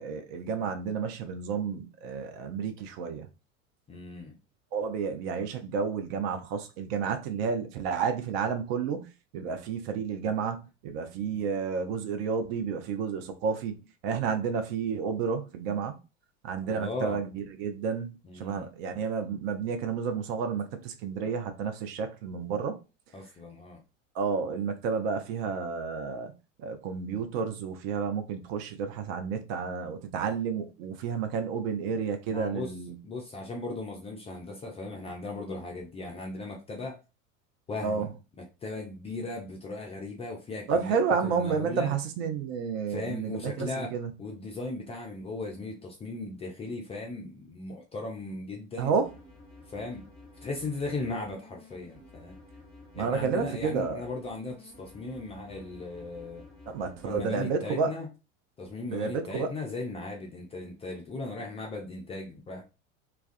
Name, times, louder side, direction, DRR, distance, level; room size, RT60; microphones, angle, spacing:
voice 1, 0.0-3.3 4.7-13.7 14.0-16.0 16.4-22.8 24.1-26.3 26.6-33.0 37.8-38.1 40.7-44.1 48.8-49.1 53.0-54.0 56.7-57.9 58.9-59.5, right 6 dB, 50° right, 0.6 m, -31 dB
voice 2, 3.9-4.3 11.3-11.5 16.7-17.2 18.2-18.7 23.1-23.8 32.3-32.7 33.0-37.0 37.7-40.9 41.2-42.0 42.9-43.9 44.2-48.9 49.7-50.0 50.4-52.4 52.9-56.4 57.0-58.1 58.6-62.6, left 2 dB, 15° left, 0.4 m, -37 dB
sound 1, 49.0-57.2, left 2 dB, 10° right, 1.0 m, -52 dB
2.3 x 2.2 x 2.5 m
figure-of-eight pair, 80°, 39 cm